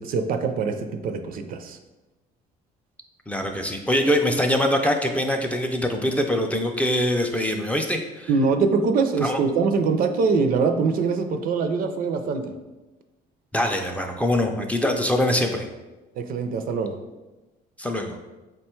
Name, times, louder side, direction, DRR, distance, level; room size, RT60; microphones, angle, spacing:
voice 1, 0.0-1.8 8.3-12.5 16.2-17.0, right 4 dB, 60° right, 7 dB, 0.4 m, -23 dB
voice 2, 3.3-8.3 9.2-9.4 13.5-15.7 17.8-18.2, left 1 dB, 10° left, 3 dB, 0.4 m, -23 dB
4.9 x 2.2 x 4.3 m, 1.1 s
cardioid pair, 110°, 17 cm